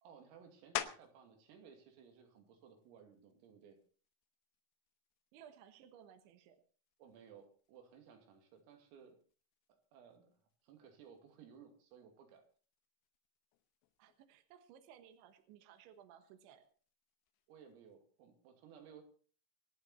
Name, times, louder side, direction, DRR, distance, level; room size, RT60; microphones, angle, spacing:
voice 1, 0.0-3.8 7.0-9.2 9.9-10.4 10.6-12.4 17.5-19.0, right 7 dB, 85° right, 4 dB, 5.3 m, -59 dB
sound 1, 0.8-1.3 1.9-6.3 6.8-12.0 12.3-17.9, left 11 dB, 85° left, 3.8 m, -51 dB
voice 2, 5.3-6.6 14.0-16.7, right 9 dB, 70° right, 7 dB, 3.5 m, -59 dB
27.0 x 9.3 x 4.2 m, 0.41 s
omnidirectional pair, 5.9 m